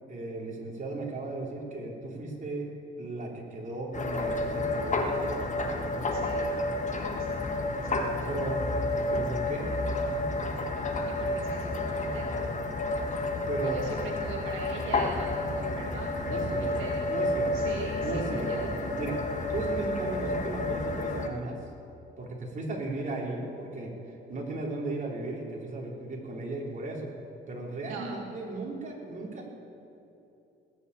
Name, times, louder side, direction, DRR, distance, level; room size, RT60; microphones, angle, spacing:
voice 1, 0.1-2.7 3.0-5.5 8.3-8.6 9.1-9.7 13.5-13.9 16.2-18.7 19.0-19.2 19.5-21.6 22.2-23.9 24.3-27.1 27.5-29.5, right 2 dB, 40° right, -2 dB, 4.0 m, -36 dB
sound 1, 3.9-21.3, left 2 dB, 40° left, 1.6 m, -30 dB
voice 2, 6.1-6.5 7.0-7.9 11.1-12.3 13.6-17.0 17.5-18.7 27.8-28.1, right 4 dB, 90° right, -1 dB, 2.0 m, -42 dB
19.5 x 7.1 x 8.7 m, 2.8 s
cardioid pair, 90°, 20 cm